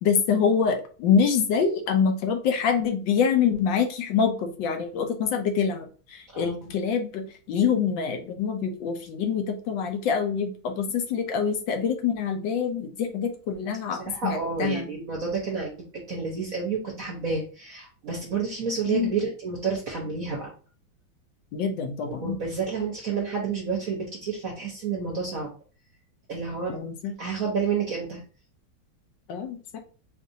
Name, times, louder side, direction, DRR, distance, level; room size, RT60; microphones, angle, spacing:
voice 1, 0.0-5.9 6.1-14.9 18.9-19.2 21.5-22.4 26.7-27.1 29.3-29.8, left 6 dB, 70° left, 5 dB, 1.3 m, -25 dB
voice 2, 6.3-6.7 14.0-15.8 16.1-20.5 22.2-25.5 26.3-26.8 27.2-28.2, right 5 dB, 50° right, -2 dB, 1.1 m, -30 dB
5.0 x 2.6 x 2.6 m, 0.37 s
omnidirectional pair, 2.3 m